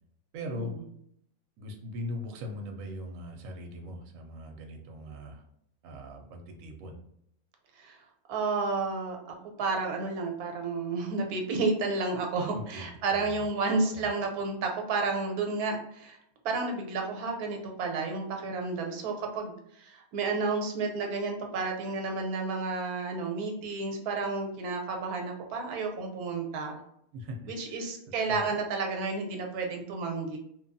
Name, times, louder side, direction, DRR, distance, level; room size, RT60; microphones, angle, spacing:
voice 1, 0.3-0.8 1.6-5.4 5.8-7.0 12.5-13.4 13.8-14.1 27.1-27.9 28.2-28.5, left 1 dB, 70° right, 2 dB, 0.9 m, -40 dB
voice 2, 8.3-9.2 9.6-16.2 16.4-26.8 27.5-30.4, right 3 dB, 90° right, 2 dB, 1.1 m, -31 dB
3.0 x 2.3 x 2.5 m, 0.72 s
omnidirectional pair, 1.5 m